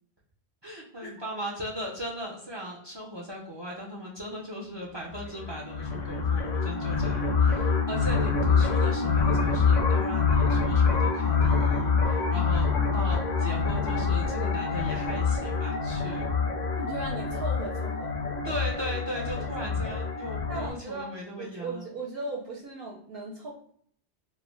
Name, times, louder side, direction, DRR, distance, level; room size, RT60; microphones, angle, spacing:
voice 1, 0.6-16.3 18.4-21.9, equal, 40° right, -2 dB, 0.4 m, -38 dB
sound 1, 5.1-20.7, left 5 dB, 55° left, 0.5 m, -26 dB
voice 2, 16.7-18.1 20.5-23.5, right 2 dB, 65° right, -2 dB, 0.7 m, -37 dB
2.3 x 2.1 x 3.1 m, 0.63 s
omnidirectional pair, 1.1 m